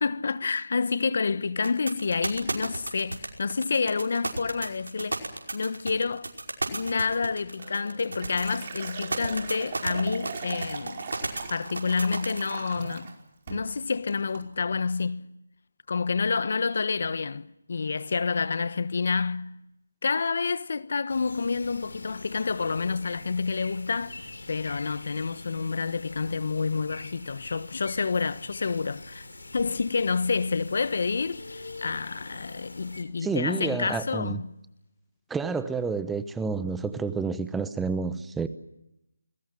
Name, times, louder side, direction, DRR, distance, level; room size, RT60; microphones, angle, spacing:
voice 1, 0.0-5.2 5.5-6.3 6.7-11.0 11.5-13.1 13.5-15.2 15.9-19.5 20.0-24.1 24.5-29.3 29.5-34.5, left 4 dB, 55° left, 1.1 m, -28 dB
sound 1, 1.6-12.5, right 2 dB, 80° right, 5.3 m, -32 dB
Liquid, 7.6-13.1 13.5-13.7 14.1-14.5, right 5 dB, 35° right, 4.8 m, -39 dB
sound 2, 21.1-33.0, left 2 dB, 85° left, 4.7 m, -44 dB
voice 2, 33.2-34.4 35.3-38.5, right 4 dB, 5° right, 0.9 m, -29 dB
28.5 x 20.5 x 7.7 m
figure-of-eight pair, 160°, 0 cm